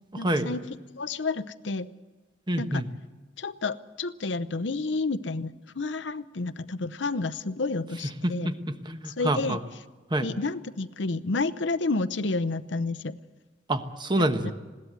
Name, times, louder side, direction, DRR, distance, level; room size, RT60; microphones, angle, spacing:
voice 1, 0.2-0.6 0.9-1.9 2.6-2.8 3.4-8.5 9.1-9.6 10.2-13.2 14.4-14.5, left 3 dB, 80° left, 12 dB, 0.8 m, -30 dB
voice 2, 2.5-2.9 8.2-9.6 10.1-10.3 13.7-14.5, right 1 dB, 25° right, 8 dB, 1.2 m, -27 dB
21.0 x 17.0 x 8.1 m, 1.3 s
head